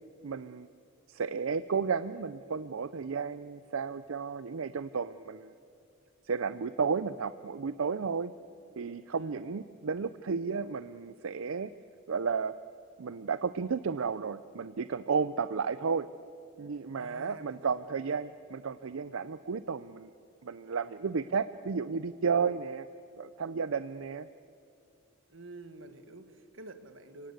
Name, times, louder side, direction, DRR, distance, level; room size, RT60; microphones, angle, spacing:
voice 1, 0.2-0.7 1.1-5.5 6.2-8.3 8.8-11.7 12.1-12.5 13.0-16.1 16.6-20.1 20.4-22.9 23.2-24.3, right 5 dB, 85° right, 14 dB, 0.5 m, -33 dB
voice 2, 9.1-9.5 16.9-18.1 25.3-27.3, right 2 dB, 70° right, 9 dB, 1.7 m, -49 dB
29.5 x 18.0 x 8.2 m, 2.6 s
head